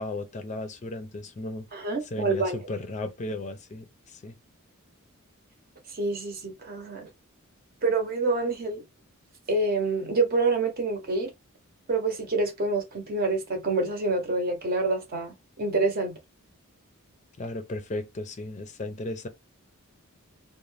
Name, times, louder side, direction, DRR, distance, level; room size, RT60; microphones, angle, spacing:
voice 1, 0.0-1.7 2.1-4.4 17.4-19.3, left 2 dB, 35° left, 0.4 m, -35 dB
voice 2, 1.7-2.6 5.9-7.1 7.8-8.8 9.5-11.3 11.9-16.2, right 3 dB, 45° right, 0.8 m, -27 dB
2.5 x 2.1 x 3.2 m
head